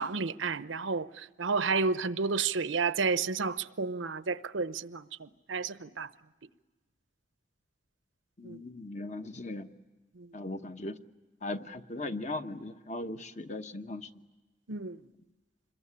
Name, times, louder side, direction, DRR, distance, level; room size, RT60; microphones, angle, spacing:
voice 1, 0.0-6.1 8.4-8.6 10.2-10.3 14.7-15.0, right 4 dB, 90° right, 0.8 m, -31 dB
voice 2, 8.4-9.7 10.3-11.0 11.4-14.1, left 2 dB, 35° left, 1.0 m, -38 dB
27.0 x 22.0 x 9.8 m
head